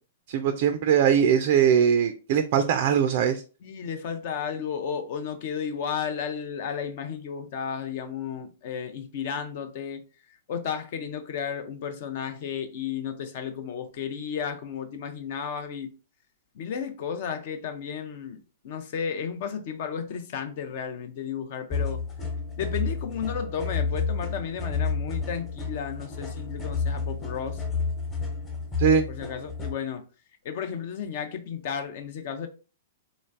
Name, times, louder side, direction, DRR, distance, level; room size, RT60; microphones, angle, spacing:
voice 1, 0.3-3.4 28.8-29.0, right 8 dB, 45° right, 0.4 m, -21 dB
voice 2, 3.6-10.0 10.5-15.9 16.5-18.4 18.6-22.0 22.6-27.6 29.1-30.0 30.4-32.5, left 7 dB, 45° left, 0.6 m, -33 dB
sound 1, 21.7-29.8, left 4 dB, 20° left, 1.1 m, -30 dB
3.9 x 3.1 x 2.5 m
figure-of-eight pair, 105°, 0 cm